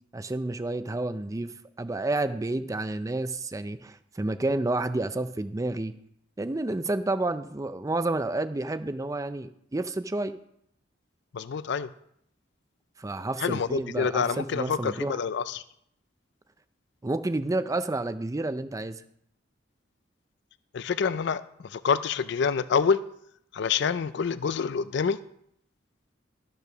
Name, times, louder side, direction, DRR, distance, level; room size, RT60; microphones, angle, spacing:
voice 1, 0.1-1.5 1.8-5.9 6.4-10.4 13.0-15.2 17.0-19.0, right 2 dB, 15° right, 12 dB, 0.4 m, -30 dB
voice 2, 11.3-11.9 13.4-15.6 20.7-23.0 23.5-25.2, left 6 dB, 60° left, 15 dB, 0.4 m, -27 dB
12.5 x 5.5 x 6.1 m, 0.72 s
head